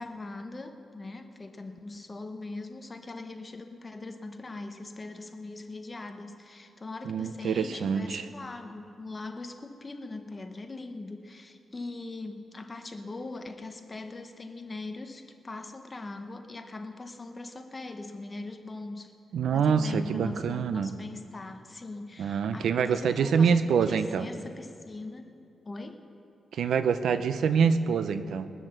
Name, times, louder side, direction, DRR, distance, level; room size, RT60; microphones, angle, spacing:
voice 1, 0.0-19.1 19.5-23.6 23.9-25.2 25.7-26.0, left 2 dB, 25° left, 6 dB, 1.0 m, -41 dB
voice 2, 7.0-8.3 19.3-20.9 22.2-24.3 26.5-28.5, right 6 dB, 80° right, 11 dB, 0.6 m, -25 dB
21.0 x 7.6 x 6.6 m, 2.5 s
cardioid pair, 105°, 0 cm